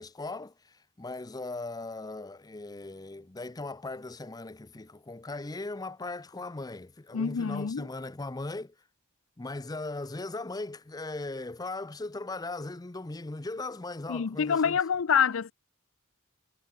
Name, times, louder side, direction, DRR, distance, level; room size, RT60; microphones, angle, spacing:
voice 1, 0.0-8.8 9.4-14.8, left 2 dB, 20° left, 0.6 m, -38 dB
voice 2, 7.1-7.9 14.1-15.5, left 7 dB, 65° left, 0.5 m, -26 dB
head